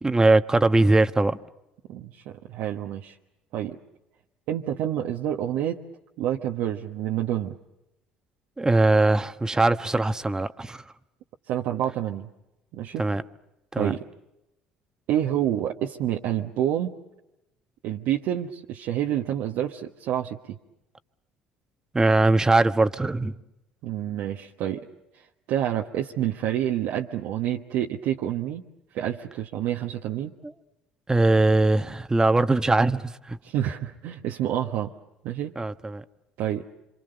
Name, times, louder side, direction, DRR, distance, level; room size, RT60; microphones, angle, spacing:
voice 1, 0.0-1.4 8.6-10.8 13.0-13.2 13.7-13.9 21.9-23.3 30.4-30.5 31.1-33.4 35.6-36.0, right 2 dB, 15° right, 1.2 m, -21 dB
voice 2, 1.9-3.2 3.5-3.8 4.5-5.8 6.2-7.5 11.5-12.3 12.7-13.0 13.8-14.1 15.1-16.9 17.8-20.6 23.8-24.9 25.1-28.6 28.9-30.3 33.4-34.9 35.2-35.5 36.4-36.7, right 11 dB, 65° right, 1.2 m, -28 dB
27.0 x 26.5 x 6.7 m
hypercardioid pair, 60°, 4 cm